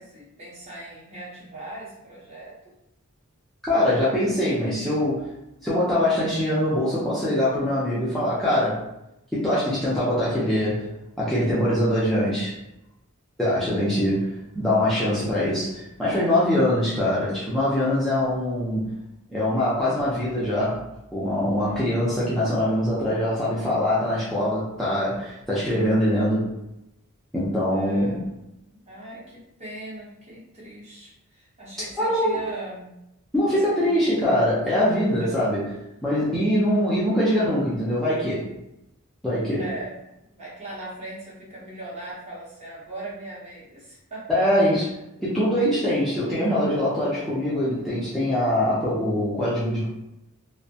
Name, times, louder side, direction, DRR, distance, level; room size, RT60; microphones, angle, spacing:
voice 1, 0.0-2.7 13.6-14.2 21.4-22.2 27.7-28.2 28.7-32.9 33.5-34.2 35.0-35.3 36.5-37.0 39.6-40.0 40.3-44.4, right 1 dB, 30° right, -6 dB, 0.8 m, -40 dB
voice 2, 3.6-5.3 5.6-8.8 9.3-10.9 11.2-12.5 13.4-14.3 14.5-18.9 19.3-20.8 21.1-26.5 27.3-28.2 32.0-32.5 33.3-35.6 36.0-38.5 39.2-39.7 44.3-49.9, left 1 dB, ahead, -10 dB, 0.4 m, -23 dB
2.5 x 2.1 x 2.6 m, 0.86 s
head